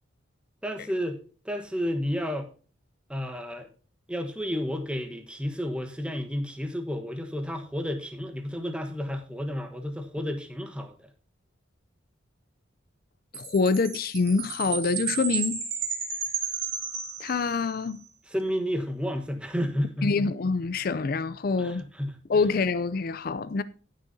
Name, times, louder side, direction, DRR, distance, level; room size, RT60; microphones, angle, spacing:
voice 1, 0.6-1.2 1.4-2.5 3.1-3.7 4.1-11.1 18.3-20.1 21.6-22.2, equal, 5° right, 1.1 m, -31 dB
voice 2, 13.3-15.6 17.2-18.0 20.0-21.8 22.3-23.6, left 4 dB, 50° left, 0.4 m, -26 dB
Chime, 13.3-17.8, right 6 dB, 65° right, 3.9 m, -33 dB
18.5 x 6.5 x 2.7 m
head